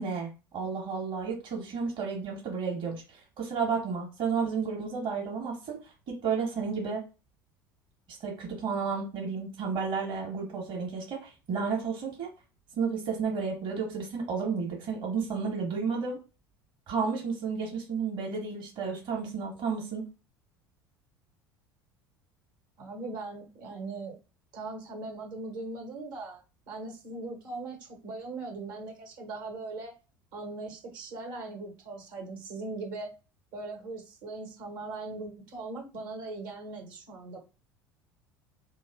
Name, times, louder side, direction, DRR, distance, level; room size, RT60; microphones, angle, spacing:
voice 1, 0.0-5.8 6.1-7.0 8.2-12.3 12.7-16.2 16.9-20.1, right 5 dB, 45° right, -1 dB, 1.3 m, -32 dB
voice 2, 22.8-24.2 24.5-26.4 26.7-29.9 30.3-33.1 33.5-37.4, right 3 dB, 65° right, 1 dB, 1.4 m, -39 dB
3.1 x 2.5 x 3.6 m, 0.31 s
figure-of-eight pair, 65°, 12 cm